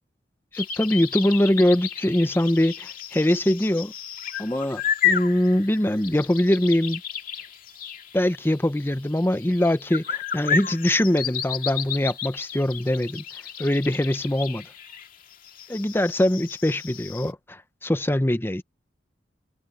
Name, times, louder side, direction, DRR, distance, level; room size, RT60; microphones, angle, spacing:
sound 1, 0.5-17.3, left 8 dB, 50° left, 2.3 m, -32 dB
voice 1, 0.5-3.9 4.4-7.0 8.1-13.2 13.6-14.7 15.7-18.6, left 1 dB, 15° left, 0.8 m, -23 dB
head